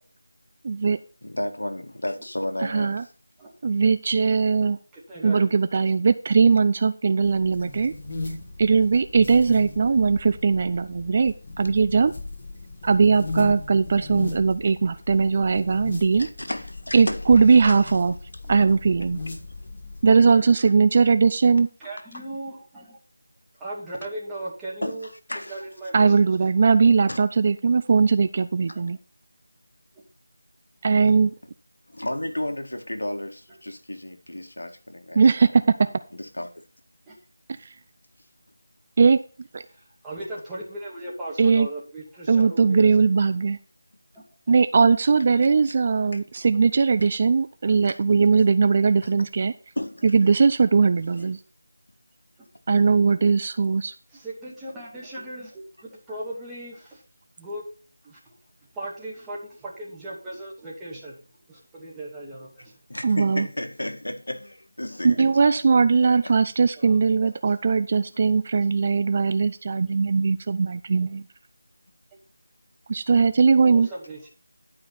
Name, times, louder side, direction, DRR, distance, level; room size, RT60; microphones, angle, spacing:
voice 1, 0.6-1.0 2.6-3.0 3.6-4.8 5.2-7.9 8.6-12.1 12.8-16.3 16.9-18.1 18.5-19.2 20.0-21.7 25.9-29.0 30.8-31.3 35.1-35.8 39.0-39.2 39.5-39.6 41.4-41.7 42.3-43.6 44.5-49.5 50.0-51.4 52.7-53.9 63.0-63.5 65.0-71.2 72.9-73.9, right 5 dB, 35° right, 0.5 m, -19 dB
voice 2, 1.2-3.1 7.8-7.9 16.2-18.0 19.5-19.6 24.8-25.6 27.1-27.2 28.7-28.8 31.1-31.2 31.9-35.2 36.1-36.6 45.4-45.5 46.1-46.2 47.8-48.0 48.4-48.5 49.0-49.1 49.8-50.0 62.9-65.3 66.2-66.4 67.2-67.3 68.1-68.2, left 1 dB, 80° left, 1.8 m, -33 dB
voice 3, 4.6-5.5 18.4-18.8 21.8-23.0 23.6-25.1 25.5-26.3 28.7-28.8 37.1-37.2 39.7-42.9 44.1-44.2 47.7-47.8 51.2-51.3 54.1-57.0 57.4-57.6 58.0-58.3 58.7-61.1 61.5-62.7 66.8-67.0 73.6-74.3, right 1 dB, 10° right, 2.5 m, -37 dB
sound 1, 7.2-20.1, left 2 dB, 25° left, 4.4 m, -37 dB
11.5 x 5.1 x 5.9 m
figure-of-eight pair, 165°, 0 cm